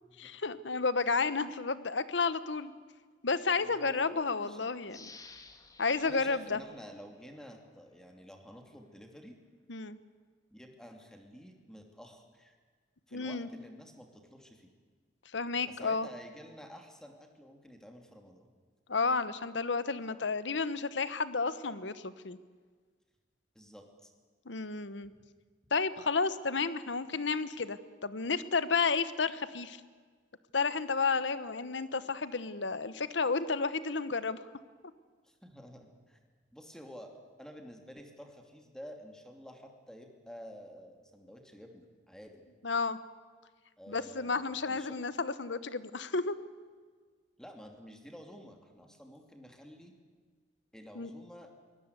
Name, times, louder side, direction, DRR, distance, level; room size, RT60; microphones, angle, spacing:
voice 1, 0.2-2.7 3.2-5.1 5.8-6.6 9.7-10.0 13.1-13.5 15.3-16.1 18.9-22.4 24.5-25.1 25.7-29.8 30.5-34.4 42.6-43.0 43.9-46.4 50.9-51.1, left 4 dB, 75° left, 14 dB, 1.1 m, -31 dB
voice 2, 3.6-4.7 6.0-9.3 10.5-12.5 13.1-14.7 15.7-18.5 23.5-24.1 35.2-36.2 36.5-37.1 37.4-42.4 43.8-45.0 47.4-49.9 50.7-51.5, equal, 5° left, 4 dB, 2.7 m, -51 dB
sound 1, 4.9-7.6 8.0-8.1, left 4 dB, 20° left, 1.6 m, -55 dB
23.5 x 19.5 x 8.2 m, 1.5 s
head